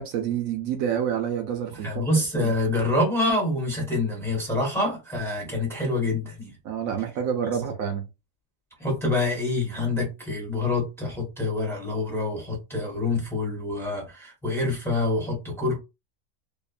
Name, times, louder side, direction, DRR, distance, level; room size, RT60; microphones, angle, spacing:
voice 1, 0.0-1.9 2.3-2.5 6.6-8.1, right 8 dB, 75° right, 1.0 m, -28 dB
voice 2, 1.8-6.5 8.8-15.8, left 2 dB, ahead, 1.1 m, -26 dB
2.9 x 2.1 x 2.4 m
omnidirectional pair, 1.5 m